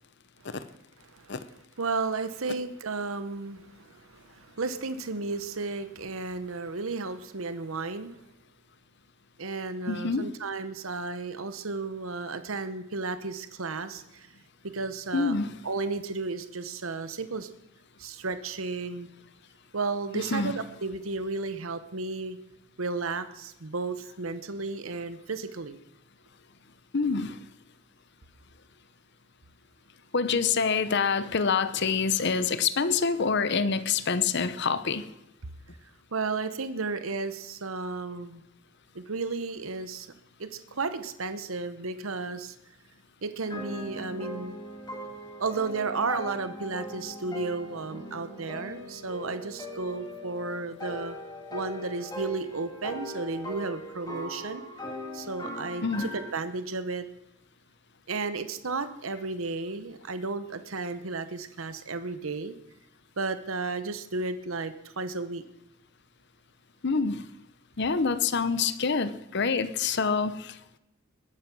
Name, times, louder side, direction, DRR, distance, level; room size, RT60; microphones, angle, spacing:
voice 1, 1.8-8.1 9.4-14.3 14.6-15.4 15.6-17.5 18.0-19.1 19.7-22.4 22.8-25.8 36.1-38.4 38.9-40.1 40.4-42.5 43.2-44.6 45.4-51.2 51.5-54.6 55.1-57.1 58.1-62.6 63.2-65.4, right 3 dB, 80° right, 11 dB, 1.0 m, -33 dB
voice 2, 9.9-10.3 15.1-15.5 20.1-20.5 26.9-27.4 30.1-35.0 55.8-56.1 66.8-67.2 67.8-70.6, left 5 dB, 55° left, 13 dB, 0.8 m, -26 dB
sound 1, 43.4-56.3, left 1 dB, 20° left, 2.3 m, -40 dB
21.5 x 9.3 x 6.1 m, 0.87 s
head